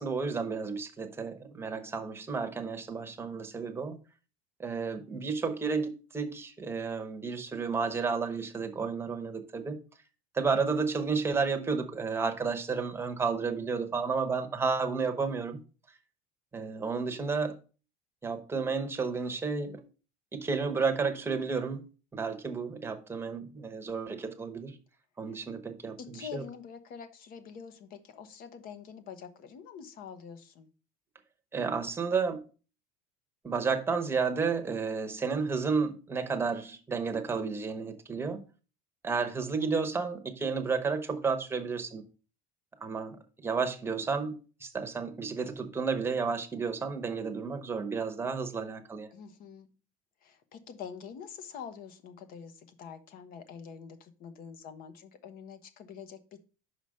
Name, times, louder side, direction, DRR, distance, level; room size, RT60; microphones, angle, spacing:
voice 1, 0.0-4.0 4.6-9.8 10.3-15.6 16.5-17.6 18.2-19.8 20.3-21.8 22.1-24.7 25.2-26.4 31.5-32.4 33.4-38.4 39.0-42.0 42.8-49.1, right 5 dB, 10° right, 1.0 m, -32 dB
voice 2, 26.0-30.7 49.1-49.7 50.2-56.4, left 7 dB, 50° left, 1.1 m, -46 dB
5.6 x 5.0 x 6.4 m
cardioid pair, 145°, 19 cm